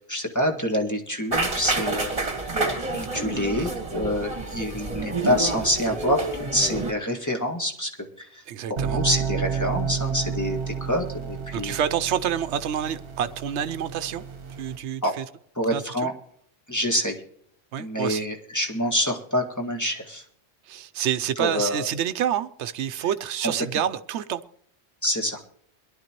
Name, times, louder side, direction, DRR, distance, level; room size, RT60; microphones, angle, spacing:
voice 1, 0.1-2.6 2.9-6.3 6.5-7.9 8.2-8.4 8.7-11.8 15.0-15.1 15.6-16.1 16.7-17.2 17.8-20.2 21.4-21.9 23.4-23.5 25.0-25.4, equal, 15° left, 1.8 m, -26 dB
sound 1, 1.3-6.9, right 3 dB, 30° right, 1.6 m, -28 dB
voice 2, 3.3-3.7 8.5-9.0 11.5-14.2 14.6-15.2 15.7-15.8 17.7-18.3 20.7-24.4, right 9 dB, 80° right, 1.0 m, -28 dB
sound 2, 8.8-14.8, right 6 dB, 55° right, 1.2 m, -31 dB
22.5 x 11.5 x 3.0 m
omnidirectional pair, 1.1 m